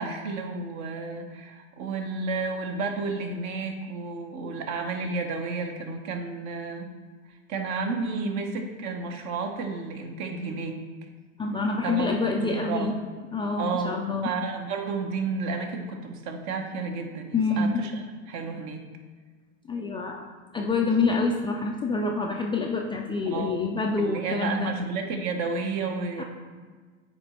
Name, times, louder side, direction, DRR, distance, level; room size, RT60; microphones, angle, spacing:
voice 1, 0.0-6.9 7.3-10.8 11.8-12.9 13.6-18.9 23.3-23.6 24.0-26.2, right 4 dB, 45° right, 4 dB, 1.0 m, -32 dB
voice 2, 11.4-13.0 13.3-14.3 17.3-17.8 19.7-20.2 20.5-24.7 26.2-26.3, left 3 dB, 15° left, 0 dB, 0.3 m, -26 dB
8.6 x 3.1 x 4.3 m, 1.4 s
hypercardioid pair, 100°, 38 cm